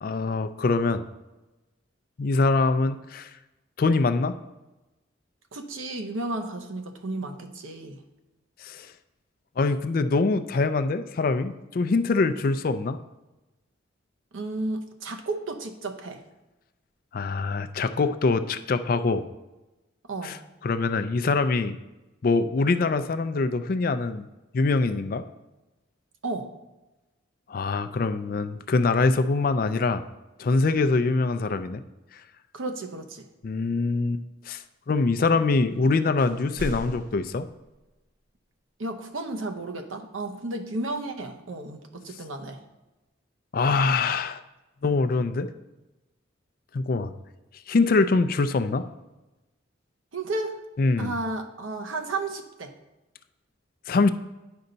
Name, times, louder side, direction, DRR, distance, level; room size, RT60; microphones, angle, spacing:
voice 1, 0.0-1.0 2.2-3.3 3.8-4.3 8.6-8.9 9.6-13.0 17.1-19.3 20.2-20.4 20.6-21.8 22.2-24.3 24.5-25.2 27.5-30.0 30.4-31.8 33.4-37.5 43.5-44.4 44.8-45.5 46.7-47.1 47.7-48.8 50.8-51.1 53.9-54.1, left 3 dB, 45° left, 11 dB, 0.4 m, -24 dB
voice 2, 5.5-8.0 14.3-16.2 20.1-20.4 26.2-26.5 32.5-33.3 38.8-42.6 50.1-50.6 51.0-52.7, right 2 dB, 85° right, 5 dB, 0.8 m, -33 dB
sound 1, 35.7-35.9 36.2-38.2, equal, 45° right, 0.6 m, -40 dB
9.6 x 5.4 x 3.9 m, 1.1 s
head